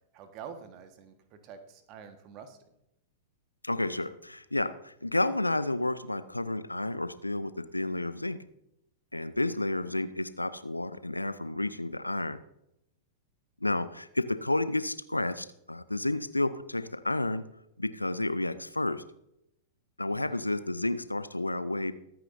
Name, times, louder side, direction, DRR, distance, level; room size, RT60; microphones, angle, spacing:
voice 1, 0.1-2.7 9.4-9.6 20.1-20.5, right 7 dB, 35° right, 8 dB, 1.5 m, -47 dB
voice 2, 3.6-8.4 9.1-12.4 13.6-17.4 17.8-19.0 20.0-21.9, left 2 dB, 85° left, 14 dB, 0.6 m, -31 dB
22.5 x 9.0 x 2.7 m, 0.83 s
figure-of-eight pair, 100°, 0 cm